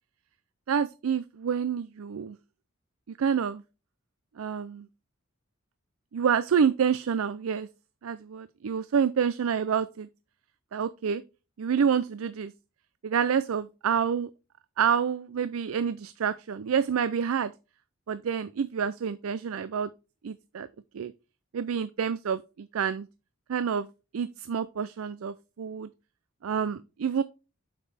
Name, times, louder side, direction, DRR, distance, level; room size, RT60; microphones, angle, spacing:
voice 1, 0.7-2.4 3.1-3.6 4.4-4.9 6.1-7.7 8.0-10.1 10.7-11.2 11.6-12.5 13.0-14.3 14.8-17.5 18.1-19.9 20.2-20.7 20.9-21.1 21.5-23.1 23.5-23.9 24.1-25.9 26.4-27.2, right 7 dB, 85° right, 0.4 m, -28 dB
7.9 x 5.3 x 3.4 m
head